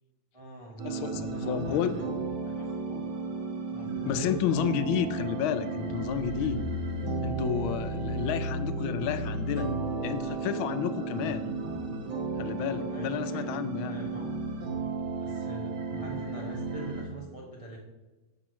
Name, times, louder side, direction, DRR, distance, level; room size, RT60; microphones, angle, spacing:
voice 1, 0.3-2.1 2.4-3.1 3.7-4.4 12.9-14.4 15.2-17.8, right 2 dB, 45° right, -2 dB, 0.4 m, -43 dB
voice 2, 0.8-1.9 4.1-6.6 7.2-9.7 10.0-11.5 12.4-14.0, left 9 dB, 85° left, 11 dB, 1.4 m, -31 dB
sound 1, 0.8-17.0, right 4 dB, 90° right, 2.0 m, -34 dB
sound 2, 5.9-10.2 10.7-10.8, left 2 dB, 65° left, 1.8 m, -36 dB
5.3 x 4.5 x 6.1 m, 1.1 s
omnidirectional pair, 2.2 m